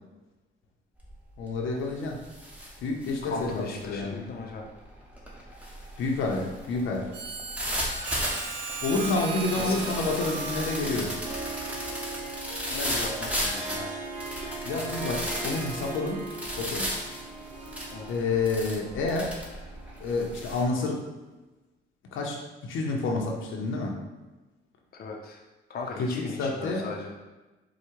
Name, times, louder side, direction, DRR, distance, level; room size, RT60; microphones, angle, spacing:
sound 1, 1.0-1.3 1.7-20.6, equal, 5° right, 1.1 m, -36 dB
voice 1, 1.4-2.2 2.8-4.3 6.0-7.1 8.4-11.1 14.6-16.2 16.6-16.9 18.1-19.4 20.0-21.0 22.1-23.9 26.0-26.9, left 3 dB, 80° left, 0 dB, 0.8 m, -29 dB
voice 2, 3.2-4.7 9.6-9.9 12.7-13.9 17.9-18.1 24.9-25.4 25.7-27.1, left 3 dB, 50° left, 0 dB, 0.7 m, -37 dB
Harmonica, 7.1-12.3, right 6 dB, 60° right, 0.6 m, -38 dB
Harp, 8.8-20.6, right 3 dB, 35° right, 1.1 m, -40 dB
4.8 x 2.3 x 4.5 m, 1.1 s
cardioid pair, 90°, 20 cm